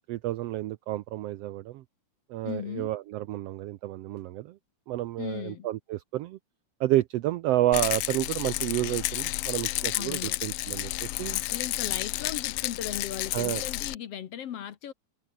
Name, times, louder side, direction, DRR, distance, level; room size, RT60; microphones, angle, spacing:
voice 1, 0.0-1.8 2.3-4.6 4.9-6.4 6.8-11.4 13.3-13.6, right 15 dB, 80° right, 1.4 m, -30 dB
voice 2, 2.4-2.9 5.2-5.7 9.9-10.4 11.3-14.9, left 10 dB, 60° left, 2.1 m, -37 dB
Rattle, 7.7-14.0, left 18 dB, 90° left, 1.4 m, -31 dB
omnidirectional pair, 3.5 m